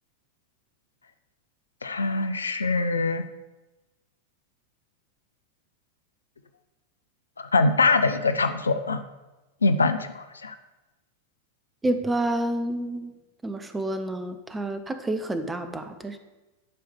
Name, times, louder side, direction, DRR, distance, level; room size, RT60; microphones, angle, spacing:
voice 1, 1.8-3.2 7.4-9.0 9.6-10.5, left 3 dB, 75° left, 9 dB, 0.7 m, -23 dB
voice 2, 11.8-13.1 13.4-16.2, right 1 dB, 10° right, 8 dB, 0.9 m, -29 dB
11.0 x 4.8 x 7.1 m, 1.1 s
figure-of-eight pair, 90°, 0 cm